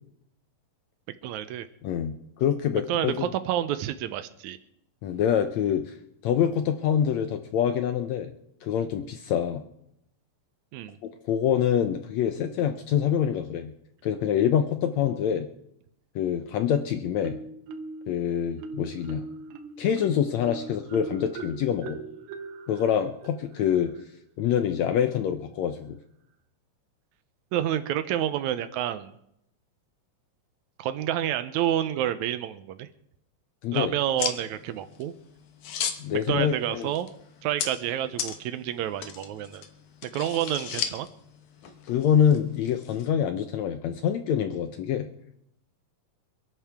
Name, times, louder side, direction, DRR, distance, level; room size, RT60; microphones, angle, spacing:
voice 1, 1.2-1.7 2.9-4.6 10.7-11.0 27.5-29.1 30.8-32.9 33.7-35.1 36.1-37.1 37.4-39.6 40.0-41.1, right 11 dB, 90° right, 11 dB, 1.7 m, -29 dB
voice 2, 1.8-3.3 5.0-5.9 6.2-8.3 8.6-9.6 11.0-13.7 14.0-15.5 16.1-17.4 18.1-19.3 19.8-22.0 22.7-23.9 24.4-26.0 33.6-33.9 36.0-36.9 41.9-45.1, left 9 dB, 80° left, 7 dB, 1.6 m, -25 dB
Marimba xylophone, 17.2-18.1 18.6-24.1, right 3 dB, 75° right, 2.6 m, -40 dB
sound 1, 34.2-43.1, left 8 dB, 65° left, 2.4 m, -37 dB
26.5 x 11.0 x 3.5 m, 0.76 s
omnidirectional pair, 4.1 m